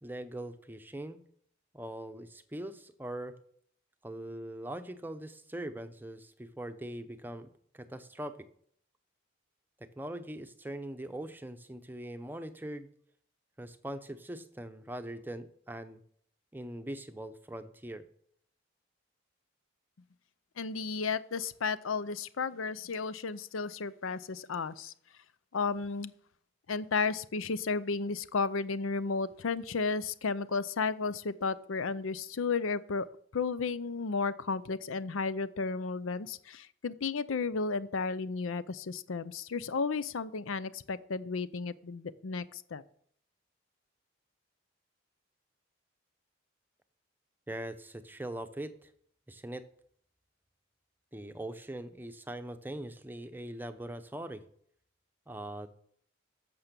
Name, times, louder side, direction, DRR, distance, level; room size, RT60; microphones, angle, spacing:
voice 1, 0.0-1.2 1.7-3.4 4.0-7.5 7.7-8.5 9.8-12.9 13.6-16.0 16.5-18.0 47.5-48.9 49.3-49.7 51.1-54.4 55.3-55.7, right 1 dB, 10° right, 9 dB, 0.7 m, -41 dB
voice 2, 20.6-24.9 25.5-26.1 26.7-33.1 33.3-42.8, left 4 dB, 85° left, 16 dB, 0.6 m, -33 dB
11.5 x 6.9 x 6.8 m, 0.64 s
head